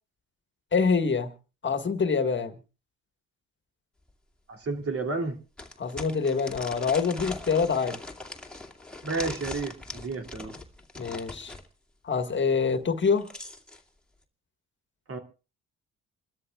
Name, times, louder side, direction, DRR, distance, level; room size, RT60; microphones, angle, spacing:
voice 1, 0.7-1.3 1.6-2.5 5.8-8.0 11.0-11.5 12.0-13.3, left 5 dB, 40° left, 1.7 m, -25 dB
sound 1, 4.1-4.2 4.6-4.7 5.6-11.7 12.9-13.8, left 2 dB, 5° left, 2.3 m, -41 dB
voice 2, 4.5-5.4 9.0-10.5 15.1-15.2, right 3 dB, 50° right, 2.9 m, -31 dB
28.5 x 13.0 x 2.4 m
cardioid pair, 90°, 30 cm